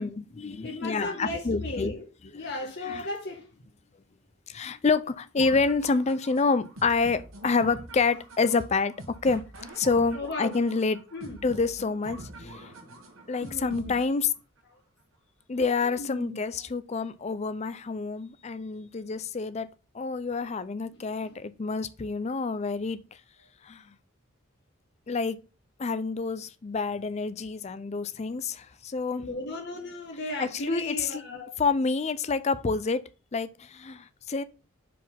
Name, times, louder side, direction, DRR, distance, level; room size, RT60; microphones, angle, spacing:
voice 1, 0.0-1.9 2.3-2.5 2.8-3.1 4.5-8.9 9.2-9.4 9.8-11.0 11.4-12.8 13.3-14.3 15.5-19.7 19.9-23.0 23.6-23.8 25.1-25.4 25.8-29.3 30.4-31.2 31.6-33.0 33.3-34.4, left 4 dB, 30° left, 0.4 m, -28 dB
voice 2, 0.6-2.1 2.3-3.5 10.1-10.6 11.1-11.4 13.4-13.9 16.0-16.4 20.9-21.3 29.2-31.5, left 2 dB, 55° left, 1.2 m, -36 dB
sound 1, 5.4-14.4, right 2 dB, 70° right, 1.4 m, -45 dB
5.0 x 4.1 x 5.6 m
head